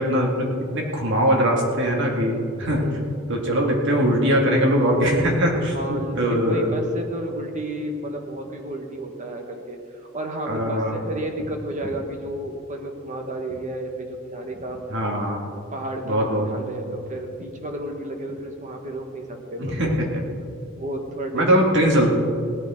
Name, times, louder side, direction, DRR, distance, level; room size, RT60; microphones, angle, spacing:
voice 1, 0.0-2.9 3.3-6.7 10.5-10.9 14.9-15.5 16.0-16.5 19.6-19.9 21.3-22.1, equal, 60° right, 0 dB, 2.3 m, -21 dB
voice 2, 2.8-3.1 5.5-14.8 15.7-20.0 20.8-21.5 22.0-22.1, right 1 dB, 35° right, 3 dB, 1.5 m, -32 dB
17.5 x 13.5 x 3.8 m, 2.5 s
head